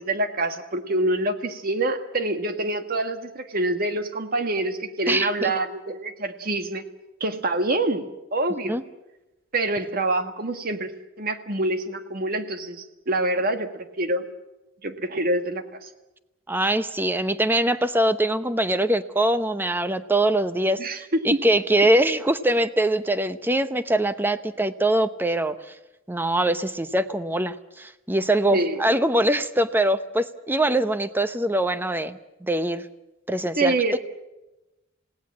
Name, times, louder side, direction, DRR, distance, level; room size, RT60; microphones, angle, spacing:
voice 1, 0.0-6.8 7.2-8.1 8.3-8.8 9.5-10.9 11.2-14.3 14.8-15.9 20.8-21.4 28.5-28.8 33.6-34.0, right 2 dB, 50° right, 8 dB, 1.7 m, -26 dB
voice 2, 5.1-5.5 8.6-8.8 16.5-25.6 26.1-32.9 33.3-33.7, right 1 dB, 10° right, 11 dB, 0.9 m, -23 dB
27.0 x 18.0 x 7.4 m, 1.0 s
head